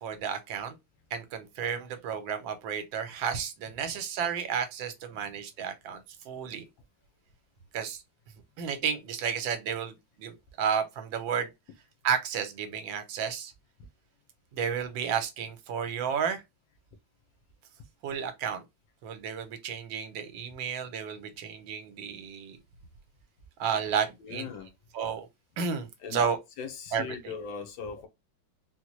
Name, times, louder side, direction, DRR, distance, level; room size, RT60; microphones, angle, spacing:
voice 1, 0.0-0.7 1.1-6.6 7.7-8.0 8.6-11.5 12.0-13.5 14.5-16.4 18.0-18.6 19.0-22.6 23.6-24.5 24.9-25.3 25.6-26.4 26.9-27.1, right 7 dB, 80° right, 1.4 m, -32 dB
voice 2, 24.2-24.7 26.0-26.2 26.6-28.1, left 6 dB, 80° left, 1.5 m, -39 dB
4.0 x 2.1 x 3.0 m
omnidirectional pair, 2.1 m